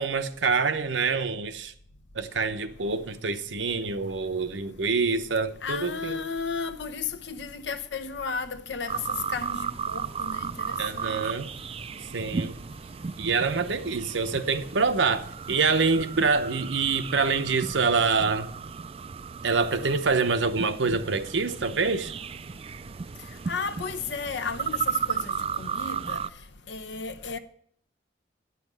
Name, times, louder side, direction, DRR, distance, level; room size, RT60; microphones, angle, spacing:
voice 1, 0.0-1.7 2.1-6.2 10.8-11.5 12.1-12.5 13.2-18.5 19.4-22.1, right 4 dB, 85° right, 0.8 m, -26 dB
voice 2, 5.6-11.2 23.5-26.2 26.7-27.4, left 5 dB, 75° left, 0.8 m, -34 dB
sound 1, 8.9-26.3, right 6 dB, 30° right, 0.3 m, -35 dB
10.0 x 5.9 x 7.3 m
head